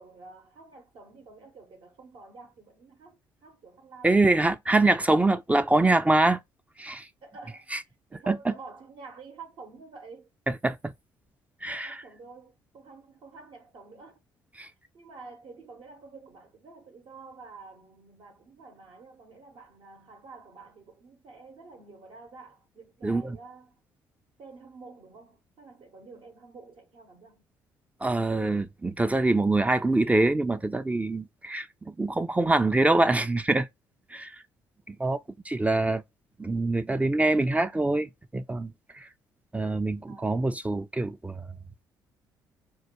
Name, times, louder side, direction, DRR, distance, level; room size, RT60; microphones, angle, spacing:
voice 1, 0.0-4.4 7.2-7.7 8.1-10.3 11.8-14.2 14.9-23.8 24.4-27.5 40.1-40.6, right 4 dB, 55° right, 0.8 m, -49 dB
voice 2, 4.0-6.4 6.8-7.1 7.7-7.8 8.3-8.5 10.5-10.9 11.6-12.0 14.6-14.7 23.0-23.4 28.0-33.7 34.1-34.4 34.9-35.2 35.5-36.0 36.4-39.1 39.5-41.6, right 2 dB, 15° right, 0.4 m, -25 dB
4.5 x 2.2 x 2.9 m
hypercardioid pair, 50°, 10 cm